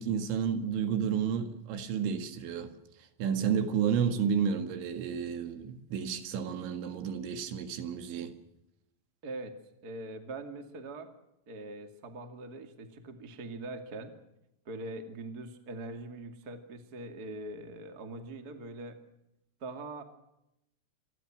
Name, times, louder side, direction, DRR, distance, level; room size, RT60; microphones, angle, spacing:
voice 1, 0.0-2.7 3.2-8.3, right 7 dB, 70° right, 4.0 m, -31 dB
voice 2, 9.2-9.6 9.8-11.1 11.5-14.1 14.6-19.0 19.6-20.0, right 2 dB, 35° right, 1.5 m, -42 dB
27.5 x 21.5 x 6.2 m
omnidirectional pair, 5.9 m